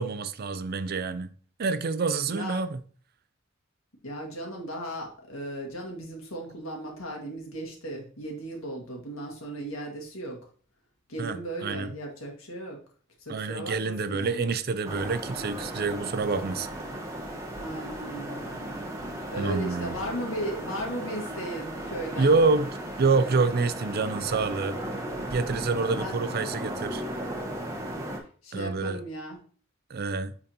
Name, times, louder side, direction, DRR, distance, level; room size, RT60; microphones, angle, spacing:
voice 1, 0.0-2.8 11.2-11.9 13.3-16.7 19.4-20.0 22.2-22.7 23.0-24.8 25.3-27.0 28.5-29.0 29.9-30.3, right 4 dB, 50° right, 0.5 m, -27 dB
voice 2, 2.3-2.6 4.0-10.4 11.1-12.8 13.2-14.5 17.6-22.4 26.0-26.2 28.4-29.4, right 1 dB, 85° left, 1.8 m, -36 dB
sound 1, 14.8-28.2, right 1 dB, 15° right, 1.2 m, -36 dB
8.7 x 4.0 x 2.9 m
head